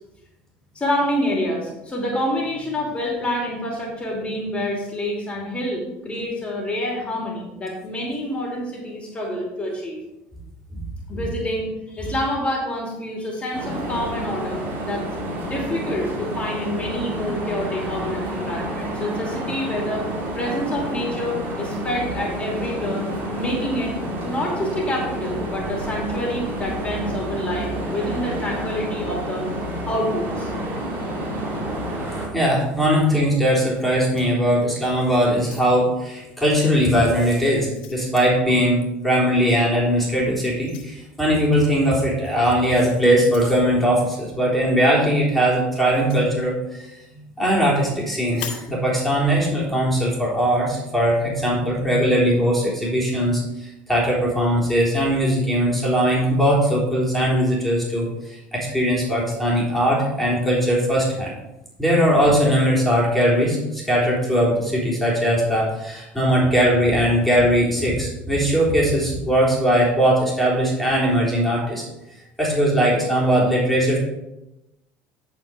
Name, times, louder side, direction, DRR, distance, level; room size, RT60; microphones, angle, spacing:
voice 1, 0.7-10.0 11.1-15.0 15.4-20.1 20.3-23.9 24.2-29.4 29.9-30.5 47.1-47.3 51.4-51.9, left 1 dB, 25° left, -2 dB, 2.7 m, -27 dB
sound 1, 13.5-32.3, right 1 dB, 40° right, 3.6 m, -29 dB
voice 2, 32.3-46.9 47.4-61.3 61.8-71.8 72.4-74.0, equal, 5° left, -5 dB, 3.6 m, -20 dB
sound 2, 33.7-34.9 35.3-36.0 36.8-37.0 37.4-38.1 39.5-39.7 40.6-40.9 42.2-42.4 43.2-43.6 45.8-46.3 48.3-48.7, left 7 dB, 85° left, 2.2 m, -40 dB
11.0 x 4.7 x 5.0 m, 0.94 s
supercardioid pair, 100°, 5 cm